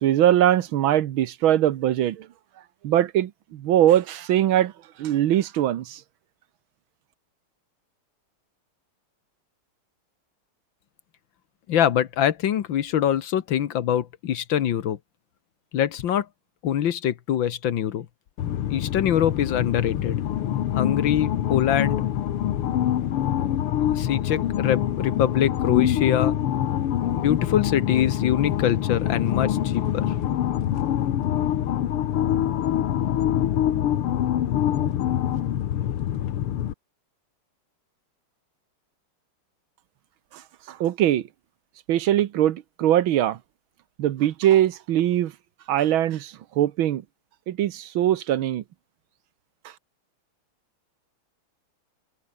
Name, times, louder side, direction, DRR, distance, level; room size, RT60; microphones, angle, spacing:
voice 1, 0.0-2.3 2.8-4.7 5.0-6.0 40.7-41.2 41.9-43.4 44.0-45.3 45.7-47.0 47.5-48.6, right 12 dB, 70° right, 1.7 m, -21 dB
voice 2, 11.7-15.0 15.7-16.3 16.6-18.1 18.7-20.2 20.8-22.1 23.9-26.4 27.2-30.0, left 10 dB, 65° left, 1.8 m, -24 dB
sound 1, 18.4-36.7, left 11 dB, 90° left, 2.1 m, -25 dB
omnidirectional pair, 2.4 m